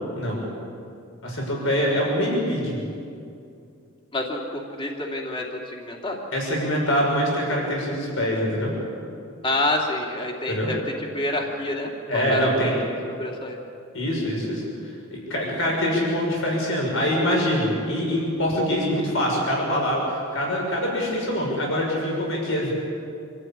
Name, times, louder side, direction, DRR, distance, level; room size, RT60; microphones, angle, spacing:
voice 1, 1.2-2.8 6.3-8.7 10.5-10.7 12.1-12.7 13.9-14.6 15.1-22.7, equal, 70° left, -2 dB, 6.4 m, -24 dB
voice 2, 4.1-6.2 9.4-12.7 13.2-13.6, left 1 dB, 25° left, 0 dB, 2.7 m, -28 dB
27.0 x 14.0 x 8.7 m, 2.5 s
head